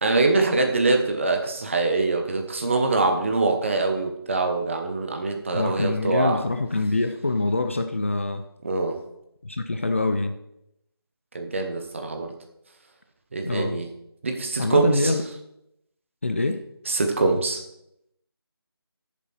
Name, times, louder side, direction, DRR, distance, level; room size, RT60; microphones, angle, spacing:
voice 1, 0.0-6.4 8.6-9.0 11.3-12.3 13.3-13.9 14.2-15.1 16.9-17.6, right 3 dB, 30° right, 5 dB, 1.1 m, -24 dB
voice 2, 5.5-8.5 9.4-10.4 13.4-13.8 14.6-15.4 16.2-16.6, left 2 dB, 30° left, 7 dB, 0.5 m, -25 dB
13.0 x 7.2 x 4.3 m, 0.82 s
figure-of-eight pair, 170°, 13 cm